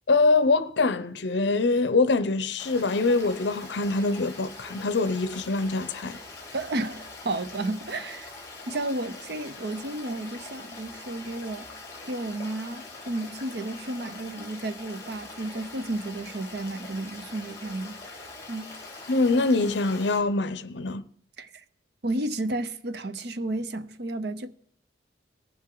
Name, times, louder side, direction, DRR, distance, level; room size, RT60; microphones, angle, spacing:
voice 1, 0.1-6.2 19.1-21.0, left 3 dB, 65° left, 0.6 m, -24 dB
Stream, 2.6-20.2, left 3 dB, 15° left, 2.5 m, -43 dB
voice 2, 6.5-8.3 8.7-11.7 12.0-18.0 18.5-18.8 21.4-21.6 22.0-24.5, right 2 dB, 60° right, 0.7 m, -32 dB
20.0 x 7.5 x 3.8 m
head